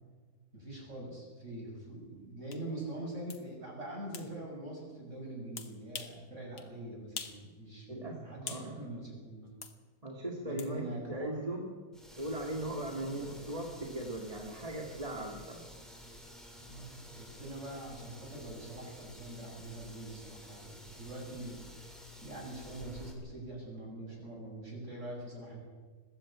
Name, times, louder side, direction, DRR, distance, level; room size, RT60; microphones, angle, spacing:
voice 1, 0.5-9.5 10.4-11.4 12.9-13.2 16.5-21.6 22.2-25.6, right 1 dB, 45° right, -1 dB, 7.7 m, -44 dB
sound 1, 2.5-2.6 3.3-3.4 4.1-4.3 5.6-6.2 6.6-6.7 7.2-7.4 7.8-8.7 9.6-9.8 10.6-10.7, left 6 dB, 85° left, 2.2 m, -43 dB
voice 2, 7.9-8.2 8.4-8.9 10.0-11.7 12.2-15.7, right 1 dB, 20° right, 0 dB, 2.3 m, -38 dB
sound 2, 11.9-23.1, left 1 dB, ahead, 3.6 m, -51 dB
21.5 x 16.0 x 8.8 m, 1.4 s
omnidirectional pair, 1.7 m